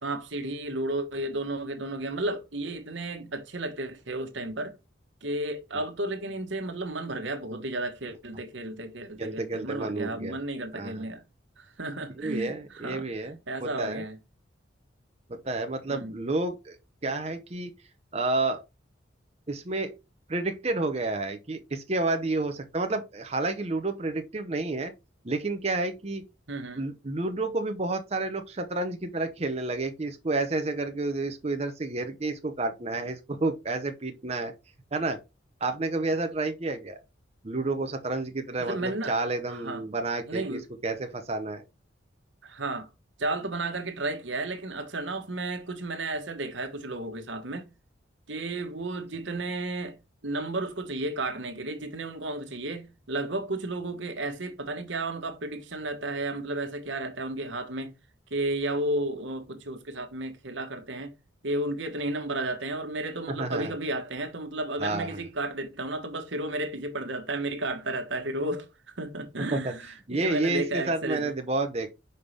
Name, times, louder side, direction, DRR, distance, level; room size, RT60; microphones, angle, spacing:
voice 1, 0.0-4.7 5.2-11.2 11.6-13.1 13.5-14.2 15.9-16.2 26.5-26.8 38.6-39.1 39.5-39.8 40.3-40.6 42.4-42.9 43.2-47.7 48.3-50.0 50.2-57.9 58.3-61.1 61.4-71.3, right 2 dB, 75° right, 1.3 m, -33 dB
voice 2, 9.2-10.3 10.7-11.0 12.2-14.0 15.3-16.8 17.0-17.7 18.1-18.6 19.5-19.9 20.3-24.9 25.2-26.2 26.8-34.5 34.9-35.2 35.6-37.0 37.4-41.6 63.4-63.7 64.8-65.2 69.5-69.7 70.1-71.9, right 2 dB, 35° right, 0.7 m, -30 dB
5.6 x 5.3 x 3.3 m
head